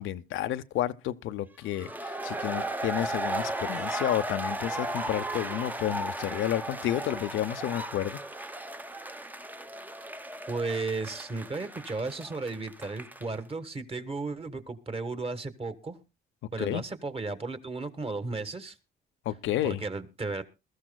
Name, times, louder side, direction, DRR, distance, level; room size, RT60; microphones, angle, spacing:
voice 1, 0.0-8.2 16.6-16.8 19.3-19.8, left 12 dB, 80° left, 0.6 m, -31 dB
sound 1, 1.7-13.4, right 1 dB, 10° right, 0.7 m, -35 dB
voice 2, 10.5-16.0 16.5-18.7 19.6-20.6, right 3 dB, 30° right, 1.5 m, -34 dB
21.0 x 13.5 x 2.3 m
cardioid pair, 90°, 20 cm